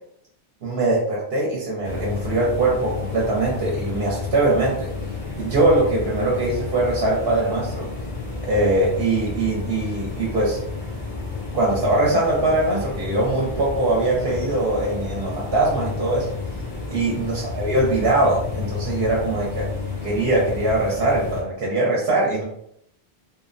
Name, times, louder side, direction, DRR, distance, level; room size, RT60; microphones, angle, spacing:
voice 1, 0.6-4.9 5.3-7.9 8.4-10.6 11.5-16.3 16.9-19.7 20.0-22.4, right 2 dB, 70° right, -4 dB, 0.9 m, -22 dB
sound 1, 1.8-21.4, left 4 dB, 45° left, 0.6 m, -31 dB
2.6 x 2.1 x 2.4 m, 0.72 s
omnidirectional pair, 1.1 m